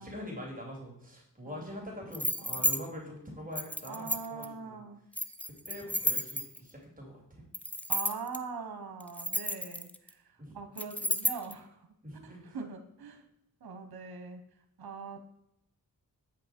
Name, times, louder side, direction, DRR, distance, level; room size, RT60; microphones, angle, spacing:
voice 1, 0.0-4.8 5.5-7.4 10.4-10.6 12.0-12.6, left 1 dB, 20° right, -1 dB, 3.1 m, -44 dB
voice 2, 1.4-1.8 2.4-2.7 3.9-5.0 7.9-11.9 12.2-13.2 13.6-14.4 14.8-15.2, right 5 dB, 75° right, 7 dB, 1.3 m, -42 dB
sound 1, 2.1-2.8 3.6-4.5 5.1-6.7 7.5-8.4 9.0-10.1 10.8-11.5, left 1 dB, 5° left, 0.5 m, -31 dB
8.7 x 5.2 x 4.4 m, 0.80 s
cardioid pair, 60°, 37 cm